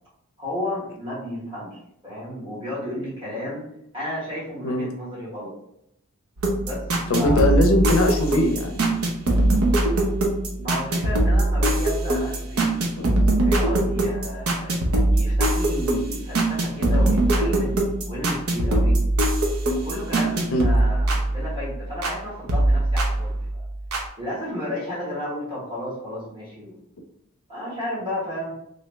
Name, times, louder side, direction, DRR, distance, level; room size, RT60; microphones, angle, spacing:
voice 1, 0.4-3.6 3.9-5.5 6.6-7.6 10.6-12.7 13.4-19.0 19.7-23.7 24.2-26.8 27.5-28.5, left 1 dB, 20° right, -8 dB, 1.4 m, -33 dB
sound 1, 6.4-22.2 22.5-24.1, right 1 dB, 80° right, 0.7 m, -22 dB
voice 2, 7.1-8.9 13.0-13.1 20.5-20.6, left 1 dB, 70° left, 3 dB, 0.5 m, -21 dB
3.0 x 2.6 x 3.3 m, 0.78 s
head